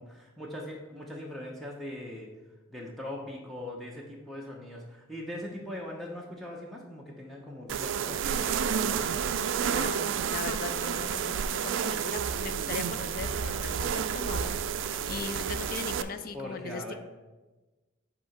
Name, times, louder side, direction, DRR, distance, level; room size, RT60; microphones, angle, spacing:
voice 1, 0.0-2.3 2.7-9.3 16.3-16.9, left 1 dB, ahead, -3 dB, 0.6 m, -41 dB
sound 1, 7.7-16.0, right 7 dB, 75° right, 0.3 m, -30 dB
voice 2, 9.6-14.5 14.8-16.9, left 4 dB, 45° left, 10 dB, 0.4 m, -39 dB
8.0 x 2.8 x 5.7 m, 1.2 s
head